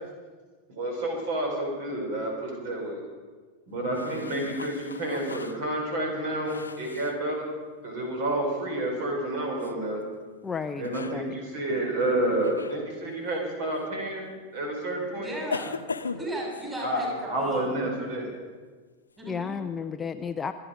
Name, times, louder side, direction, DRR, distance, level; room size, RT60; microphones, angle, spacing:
voice 1, 0.7-3.0 3.7-7.5 7.8-10.0 10.8-15.3 16.8-18.3, right 1 dB, 50° right, 1 dB, 5.0 m, -29 dB
sound 1, 3.9-7.2 9.6-9.8 10.7-11.2 12.4-12.8 13.7-13.9 15.5-16.7, left 4 dB, 75° left, 0.7 m, -37 dB
voice 2, 10.4-11.3 19.3-20.5, left 6 dB, 15° left, 9 dB, 0.6 m, -33 dB
voice 3, 15.2-15.8 16.1-17.7 19.2-19.9, right 1 dB, 15° right, -2 dB, 6.5 m, -36 dB
25.5 x 9.8 x 5.2 m, 1.4 s
figure-of-eight pair, 90°, 0 cm